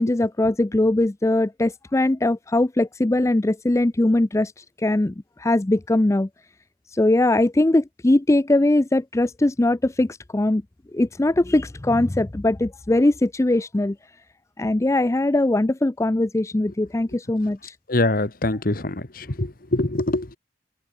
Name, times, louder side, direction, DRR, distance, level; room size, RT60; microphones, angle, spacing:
voice 1, 0.0-6.3 6.9-10.6 10.9-14.0 14.6-17.7, left 1 dB, 15° left, 0.4 m, -21 dB
voice 2, 17.9-20.4, left 2 dB, 55° left, 1.7 m, -24 dB
open air
head